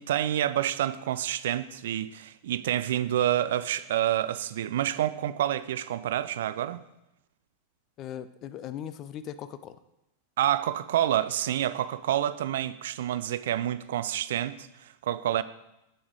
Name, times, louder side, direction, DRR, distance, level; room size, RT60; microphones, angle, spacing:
voice 1, 0.0-6.8 10.4-15.4, right 11 dB, 60° right, 0.3 m, -28 dB
voice 2, 8.0-9.8, left 10 dB, 35° left, 0.5 m, -39 dB
7.8 x 7.2 x 4.6 m
figure-of-eight pair, 90°, 0 cm